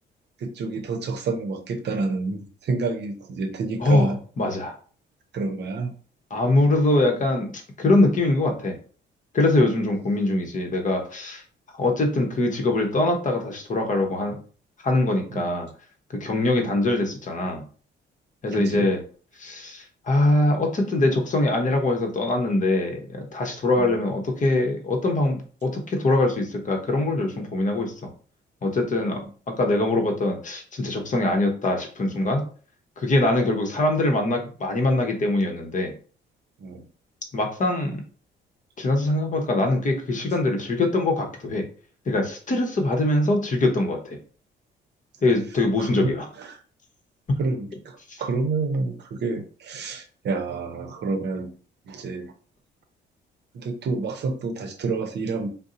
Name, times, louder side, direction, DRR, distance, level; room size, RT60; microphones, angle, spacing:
voice 1, 0.4-4.2 5.3-5.9 15.3-15.5 16.5-16.7 18.5-18.9 23.7-24.0 36.6-36.8 45.8-46.6 47.4-51.5 51.9-52.3 53.5-55.5, right 3 dB, 60° right, 5 dB, 0.7 m, -29 dB
voice 2, 3.8-4.7 6.3-7.5 7.8-8.8 9.3-11.4 11.8-14.3 14.8-15.7 16.2-17.6 18.4-19.0 19.4-28.1 28.6-32.5 33.0-35.9 37.3-38.0 38.8-41.6 42.1-44.2 45.2-46.2 47.3-47.4 48.1-48.2, left 2 dB, 40° left, 3 dB, 0.8 m, -23 dB
2.7 x 2.0 x 3.7 m, 0.41 s
cardioid pair, 90°, 20 cm